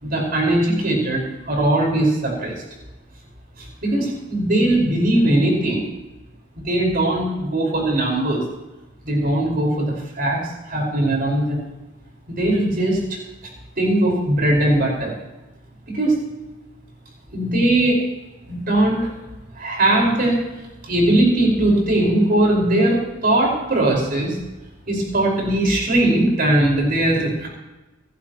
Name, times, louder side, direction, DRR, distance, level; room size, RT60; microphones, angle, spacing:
voice 1, 0.0-2.5 3.8-5.9 6.6-8.4 9.0-11.7 12.3-13.2 13.8-15.1 15.9-16.2 17.3-18.0 18.5-19.1 19.6-20.4 20.9-24.4 24.9-27.5, right 1 dB, 45° right, -1 dB, 5.2 m, -19 dB
26.0 x 12.0 x 3.1 m, 1.0 s
head